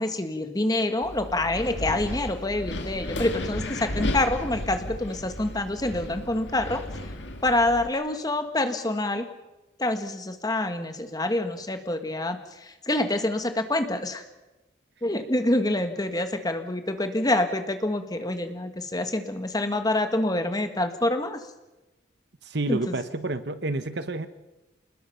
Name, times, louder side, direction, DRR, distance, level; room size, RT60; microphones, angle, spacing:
voice 1, 0.0-6.8 7.4-9.3 9.8-14.2 15.0-21.4 22.7-23.0, left 1 dB, 20° left, 7 dB, 1.6 m, -26 dB
Wind, 1.0-7.9, left 1 dB, 65° left, 2.1 m, -34 dB
voice 2, 22.4-24.3, right 2 dB, 60° right, 12 dB, 1.2 m, -29 dB
27.5 x 20.0 x 5.8 m, 1.1 s
head